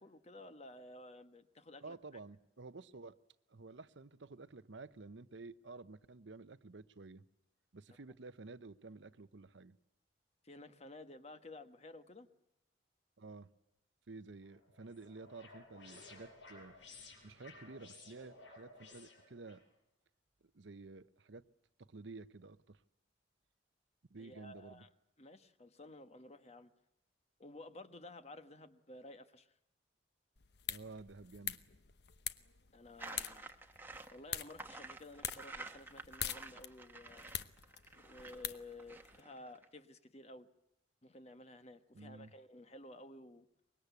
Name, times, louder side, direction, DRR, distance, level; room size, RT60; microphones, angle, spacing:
voice 1, 0.0-2.0 10.4-12.3 24.2-24.9 25.2-26.7 27.4-29.6 32.7-33.5 34.1-37.3 38.0-40.5 41.0-43.5, left 2 dB, 35° left, 10 dB, 1.2 m, -53 dB
voice 2, 1.8-3.2 3.5-7.2 7.7-9.8 13.2-13.5 14.1-16.7 17.2-19.6 20.5-21.4 21.8-22.8 24.1-24.9 30.7-31.6 41.9-42.3, right 3 dB, 70° right, 14 dB, 0.8 m, -52 dB
sound 1, 14.4-19.6, left 3 dB, 75° left, 7.5 m, -57 dB
sound 2, 30.4-39.2, left 10 dB, 60° left, 1.0 m, -46 dB
sound 3, 33.0-39.7, right 2 dB, 10° right, 1.2 m, -51 dB
24.5 x 22.0 x 8.3 m, 0.87 s
head